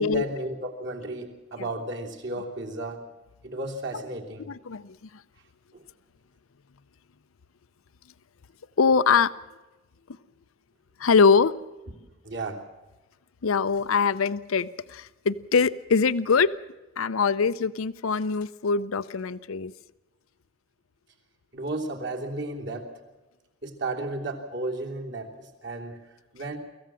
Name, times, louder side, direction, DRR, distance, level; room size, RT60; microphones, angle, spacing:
voice 1, 0.0-3.0 3.4-4.5 5.7-5.8 12.2-12.6 21.5-22.9 23.6-26.0 26.3-26.6, right 2 dB, 55° right, 0 dB, 3.2 m, -33 dB
voice 2, 4.5-5.0 8.8-9.3 11.0-11.5 13.4-16.5 17.0-19.7, left 5 dB, 80° left, 15 dB, 0.6 m, -23 dB
25.0 x 15.5 x 7.5 m, 1.1 s
head